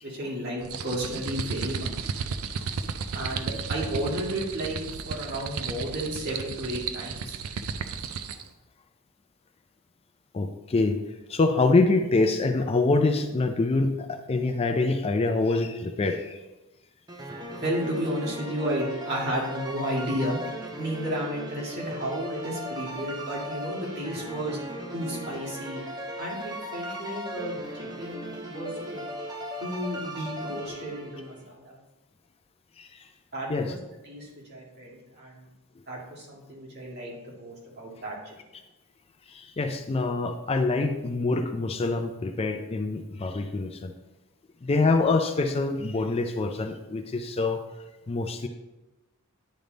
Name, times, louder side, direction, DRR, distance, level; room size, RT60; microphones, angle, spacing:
voice 1, 0.0-2.1 3.1-4.8 5.1-7.4 17.5-20.4 20.8-24.6 24.9-25.8 26.2-29.0 29.6-31.8 33.3-35.4 35.9-38.3, equal, 50° right, -4 dB, 2.2 m, -33 dB
sound 1, 0.6-8.5, right 5 dB, 70° right, 0.4 m, -34 dB
voice 2, 10.3-11.0 11.3-16.3 33.5-33.8 39.4-43.9 44.6-47.6 48.1-48.5, left 3 dB, 25° left, 6 dB, 0.4 m, -25 dB
sound 2, 17.1-31.4, equal, 20° right, 0.7 m, -37 dB
10.5 x 3.5 x 3.9 m, 1.1 s
head